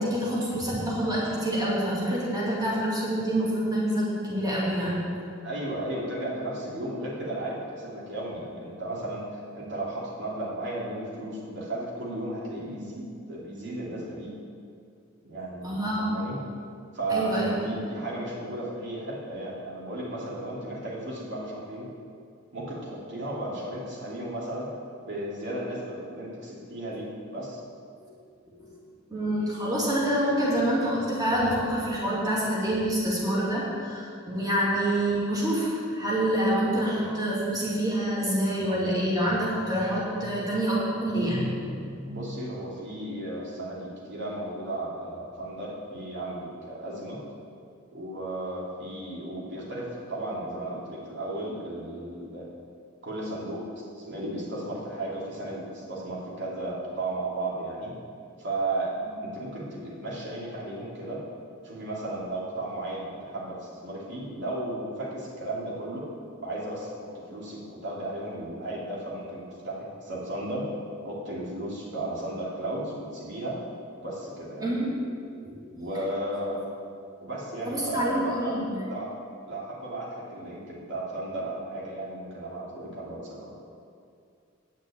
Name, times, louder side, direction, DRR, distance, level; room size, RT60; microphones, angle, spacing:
voice 1, 0.0-5.0 15.6-16.2 17.1-17.6 28.0-28.1 28.4-28.8 29.1-42.1 74.6-75.0 75.3-75.7 77.7-78.8, right 1 dB, 20° right, -7 dB, 2.8 m, -27 dB
voice 2, 5.4-14.3 15.2-16.4 16.9-21.9 22.5-24.7 25.0-27.6 42.0-47.2 47.9-52.5 53.0-57.9 58.4-61.2 61.6-66.0 66.4-70.7 71.0-73.6 73.9-74.7 75.7-76.6 77.2-78.6 78.8-79.2 79.5-83.5, right 1 dB, 60° right, -5 dB, 2.8 m, -34 dB
9.5 x 6.2 x 8.6 m, 2.4 s
head